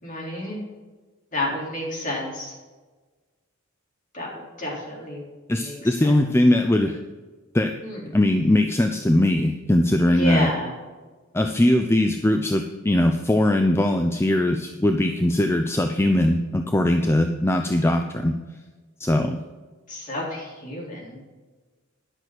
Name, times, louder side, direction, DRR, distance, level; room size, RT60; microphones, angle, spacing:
voice 1, 0.0-0.6 1.3-2.5 4.1-5.3 5.6-6.1 7.8-8.1 10.0-10.7 19.9-21.2, left 1 dB, 40° left, -3 dB, 3.5 m, -30 dB
voice 2, 5.5-7.0 7.5-7.7 8.1-10.5 11.3-18.4 19.0-19.4, left 1 dB, 10° left, 5 dB, 0.5 m, -20 dB
10.5 x 6.3 x 6.1 m, 1.3 s
head